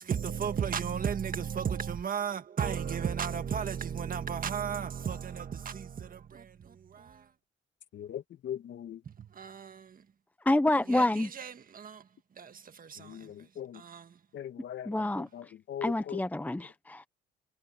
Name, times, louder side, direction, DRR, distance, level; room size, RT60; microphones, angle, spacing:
voice 1, 0.0-7.3 9.0-10.0 10.9-12.0 12.4-13.3 13.7-14.2, right 7 dB, 45° right, 1.7 m, -35 dB
voice 2, 7.9-9.0 13.0-13.8 14.3-16.2, left 10 dB, 70° left, 2.4 m, -40 dB
voice 3, 10.4-11.3 14.9-15.5 15.8-17.1, left 1 dB, 10° left, 0.8 m, -28 dB
cardioid pair, 90°, 20 cm